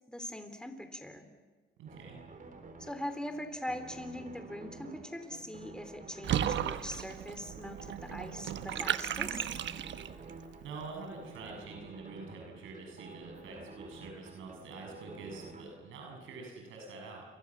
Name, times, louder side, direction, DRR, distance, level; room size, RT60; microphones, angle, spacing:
voice 1, 0.1-1.3 2.8-9.4, left 1 dB, 5° left, 8 dB, 3.4 m, -42 dB
voice 2, 1.8-2.2 10.6-17.3, right 3 dB, 85° right, 1 dB, 7.4 m, -46 dB
sound 1, 1.9-15.6, right 3 dB, 40° right, 4.2 m, -51 dB
Water / Bathtub (filling or washing), 6.2-10.3, right 10 dB, 65° right, 1.1 m, -35 dB
29.5 x 24.5 x 7.4 m, 1.4 s
cardioid pair, 90°, 20 cm